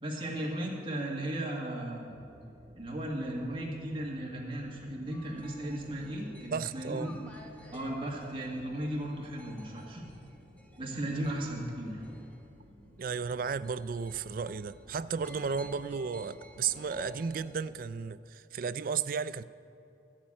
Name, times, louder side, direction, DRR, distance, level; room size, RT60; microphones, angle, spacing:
voice 1, 0.0-2.2 2.8-7.1 7.7-10.1 10.8-12.0, right 1 dB, 30° right, -2 dB, 1.8 m, -36 dB
sound 1, 2.1-17.9, equal, 70° right, 1.3 m, -57 dB
sound 2, 5.1-12.5 13.3-17.7, right 1 dB, 10° left, 1.1 m, -52 dB
voice 2, 6.5-7.1 13.0-19.4, right 6 dB, 50° right, 14 dB, 0.4 m, -34 dB
13.5 x 7.3 x 8.6 m, 2.8 s
head